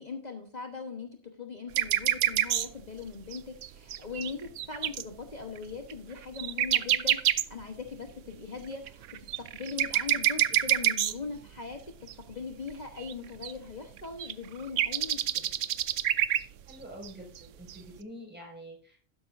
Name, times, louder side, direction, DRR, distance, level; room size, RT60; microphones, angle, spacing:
voice 1, 0.0-9.0 9.4-11.8 12.3-15.5, left 5 dB, 35° left, 3 dB, 1.2 m, -40 dB
sound 1, 1.7-2.8 3.3-5.0 5.6-5.7 5.9-6.0 6.2-7.9 8.6-11.4 12.1-12.2 12.7-12.8 13.0-13.5 14.0-14.3 14.6-16.4 16.7-16.8 17.0-17.1 17.4-17.5 17.7-17.8, right 11 dB, 80° right, 1.0 m, -27 dB
voice 2, 16.7-19.0, equal, 10° right, -2 dB, 5.5 m, -46 dB
12.5 x 10.5 x 2.6 m, 0.40 s
omnidirectional pair, 1.3 m